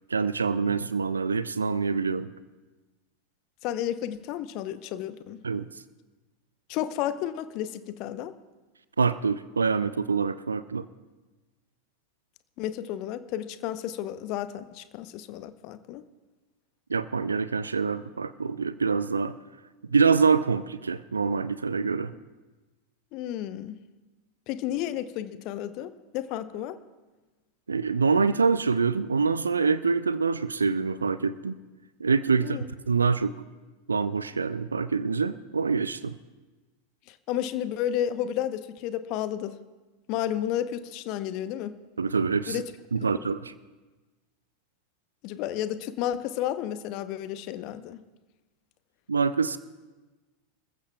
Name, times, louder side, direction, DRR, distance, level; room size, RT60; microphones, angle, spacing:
voice 1, 0.1-2.3 5.4-5.7 9.0-10.9 16.9-19.3 19.9-22.1 27.7-31.6 32.0-32.6 32.9-33.3 33.9-36.1 42.0-42.6 42.9-43.5 49.1-49.6, right 5 dB, 80° right, 15 dB, 0.4 m, -25 dB
voice 2, 3.6-5.4 6.7-8.3 12.6-16.0 23.1-23.8 24.5-26.8 32.4-32.6 37.1-39.6 40.1-41.8 42.5-42.7 43.2-43.3 45.2-48.0, left 11 dB, 45° left, 13 dB, 0.7 m, -32 dB
26.0 x 15.0 x 2.3 m, 1.2 s
figure-of-eight pair, 85°, 0 cm